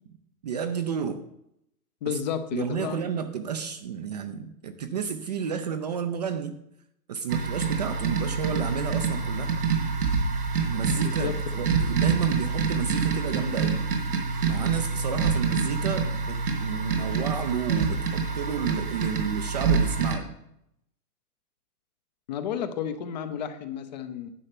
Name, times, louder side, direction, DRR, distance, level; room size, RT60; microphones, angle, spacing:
voice 1, 0.4-1.2 2.1-2.2 2.5-6.6 7.1-9.5 10.7-13.8 14.5-20.3, right 7 dB, 30° right, 8 dB, 0.4 m, -31 dB
voice 2, 2.0-3.0 11.0-11.4 22.3-24.3, left 8 dB, 30° left, 10 dB, 0.6 m, -32 dB
sound 1, 7.3-20.2, right 5 dB, 75° right, 2.7 m, -26 dB
9.9 x 5.5 x 5.9 m, 0.78 s
hypercardioid pair, 145°, 45 cm